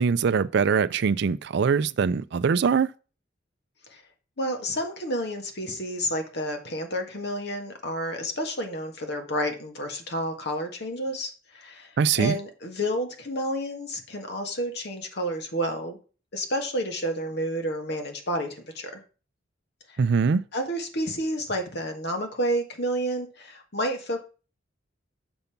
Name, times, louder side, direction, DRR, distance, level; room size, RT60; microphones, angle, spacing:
voice 1, 0.0-2.9 12.0-12.3 20.0-20.4, right 5 dB, 60° right, 0.4 m, -22 dB
voice 2, 4.4-11.9 12.2-16.0 16.3-19.0 19.9-20.0 20.5-24.2, equal, 60° left, 1.6 m, -30 dB
7.0 x 5.3 x 5.7 m
head